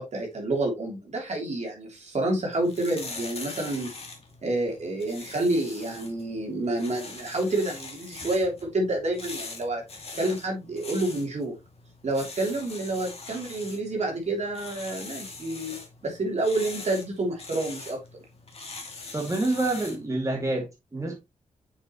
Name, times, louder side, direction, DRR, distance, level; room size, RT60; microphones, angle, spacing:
voice 1, 0.0-3.9 4.4-9.8 10.2-11.6 12.0-15.8 16.0-18.0, right 2 dB, 55° right, 3.1 m, -28 dB
sound 1, 2.4-20.1, left 3 dB, 45° left, 2.5 m, -42 dB
voice 2, 19.1-21.2, right 2 dB, 25° right, 2.4 m, -27 dB
7.2 x 6.8 x 3.0 m
cardioid pair, 90°, 14 cm